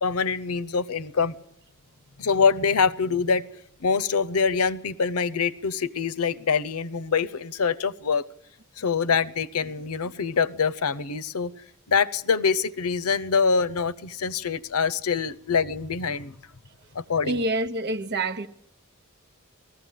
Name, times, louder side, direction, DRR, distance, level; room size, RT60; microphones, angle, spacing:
voice 1, 0.0-1.3 2.2-3.4 3.8-8.3 8.8-11.5 11.9-16.3 16.9-17.4, left 5 dB, 90° left, 0.7 m, -25 dB
voice 2, 17.2-18.5, right 2 dB, 50° right, 1.1 m, -27 dB
19.5 x 14.5 x 9.2 m
head